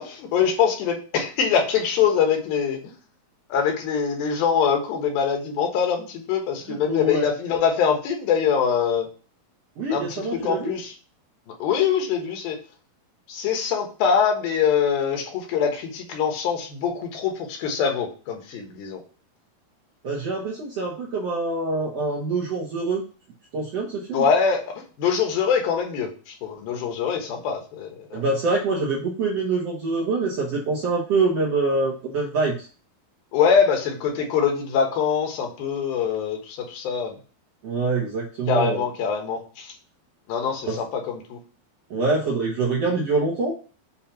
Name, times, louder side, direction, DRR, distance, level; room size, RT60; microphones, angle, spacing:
voice 1, 0.0-2.9 3.5-9.1 9.9-10.9 11.6-12.6 13.3-19.0 24.1-24.7 25.0-28.2 33.3-37.1 38.5-39.7 40.3-41.4, left 7 dB, 80° left, 3 dB, 3.0 m, -23 dB
voice 2, 6.7-7.3 9.8-10.7 20.0-23.0 23.5-24.2 28.1-32.7 37.6-38.8 40.6-40.8 41.9-43.5, right 3 dB, 65° right, -3 dB, 1.6 m, -25 dB
7.2 x 2.8 x 5.6 m, 0.38 s
omnidirectional pair, 4.1 m